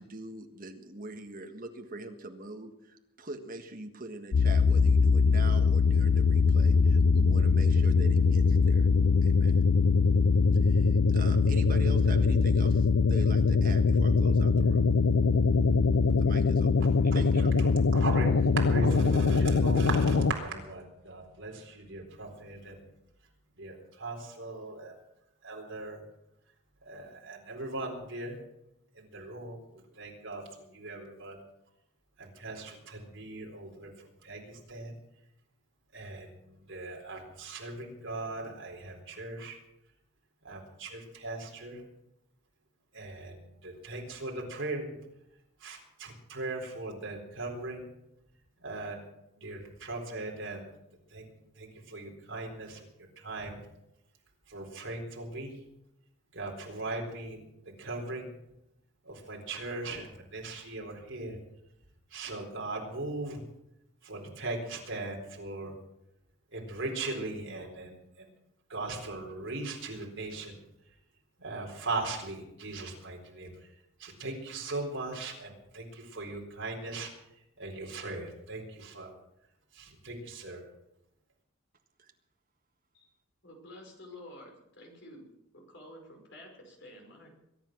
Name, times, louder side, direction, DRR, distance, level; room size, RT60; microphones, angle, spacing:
voice 1, 0.0-8.9 9.2-9.6 10.5-14.8 16.2-16.7 17.1-17.5 82.0-82.1, right 2 dB, 40° right, 5 dB, 1.6 m, -43 dB
sound 1, 4.3-20.3, left 4 dB, 90° left, 0.6 m, -23 dB
voice 2, 17.6-22.9 23.6-25.0 25.4-26.0 26.8-28.4 28.9-31.4 32.2-34.9 35.9-39.6 40.4-41.8 42.9-45.0 45.6-47.9 48.6-49.0 49.4-50.7 51.1-53.6 54.5-55.5 56.3-57.4 57.8-58.3 59.0-61.4 62.1-63.4 64.0-65.7 66.5-68.3 68.7-70.6 71.4-73.7 74.0-77.1 77.6-79.1 79.7-80.6, right 2 dB, 55° right, 0 dB, 4.2 m, -39 dB
voice 3, 83.4-85.3 85.5-87.5, left 1 dB, 55° left, 1 dB, 5.2 m, -50 dB
22.5 x 10.0 x 6.1 m, 0.87 s
head